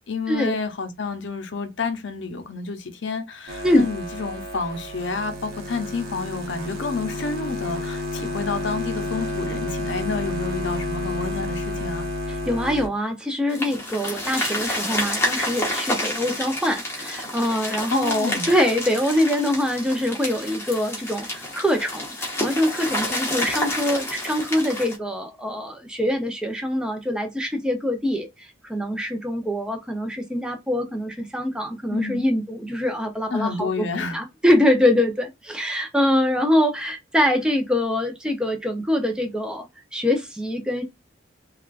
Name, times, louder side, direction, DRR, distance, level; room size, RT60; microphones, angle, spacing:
voice 1, 0.1-12.1 17.9-18.5 31.9-32.3 33.3-34.2, left 4 dB, 70° left, 0.6 m, -29 dB
sound 1, 3.5-12.9, left 2 dB, 55° right, 0.9 m, -30 dB
voice 2, 12.5-33.9 34.1-39.7 39.9-40.8, left 1 dB, 5° right, 0.6 m, -24 dB
sound 2, 13.5-25.0, left 1 dB, 15° left, 1.0 m, -29 dB
3.5 x 2.3 x 2.4 m
head